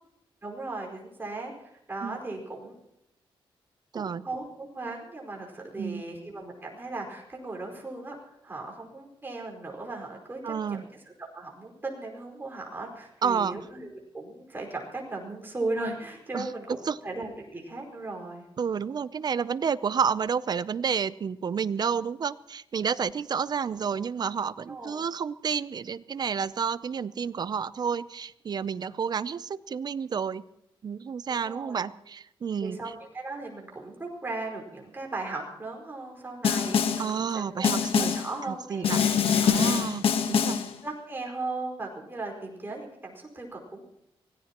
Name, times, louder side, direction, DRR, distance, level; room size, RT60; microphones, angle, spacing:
voice 1, 0.4-2.8 3.9-11.0 11.3-18.5 24.7-25.1 31.3-31.8 32.6-39.1 39.5-39.6 40.8-43.8, right 2 dB, 25° right, 0 dB, 5.0 m, -37 dB
voice 2, 3.9-4.3 5.8-6.0 10.4-10.8 13.2-13.6 16.3-16.5 16.9-17.0 18.6-30.4 30.8-32.8 37.0-38.1 38.5-39.0 39.4-40.6, right 6 dB, 45° right, 17 dB, 0.5 m, -30 dB
Snare drum, 36.4-37.1 37.6-38.3 38.8-40.7, left 7 dB, 85° left, 1.2 m, -24 dB
24.5 x 18.0 x 3.0 m, 0.82 s
wide cardioid pair, 120°, 9 cm